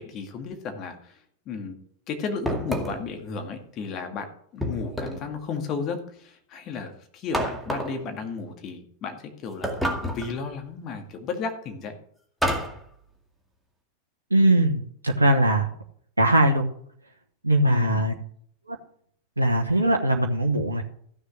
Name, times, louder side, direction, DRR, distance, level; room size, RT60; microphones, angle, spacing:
voice 1, 0.0-1.8 2.1-12.0 17.6-18.1, left 5 dB, 35° left, 4 dB, 2.1 m, -34 dB
sound 1, 2.5-3.1 4.6-5.3 7.3-8.0 9.6-10.4 12.4-12.8, equal, ahead, 2.1 m, -28 dB
voice 2, 14.3-15.7 16.2-16.7 17.4-18.1 18.7-18.8 19.4-20.8, right 1 dB, 80° right, 2 dB, 1.1 m, -21 dB
14.5 x 6.7 x 6.4 m, 0.63 s
figure-of-eight pair, 90°, 0 cm